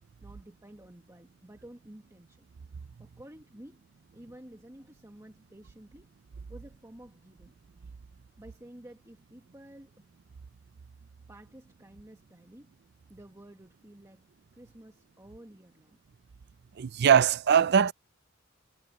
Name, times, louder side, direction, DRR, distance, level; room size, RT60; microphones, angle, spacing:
voice 1, 0.2-2.5 3.0-3.9 4.1-6.1 6.5-7.5 8.4-10.1 11.3-12.7 13.1-14.3 14.5-16.0, right 1 dB, 15° right, 1.5 m, -51 dB
voice 2, 16.8-17.9, right 7 dB, 55° right, 0.4 m, -21 dB
head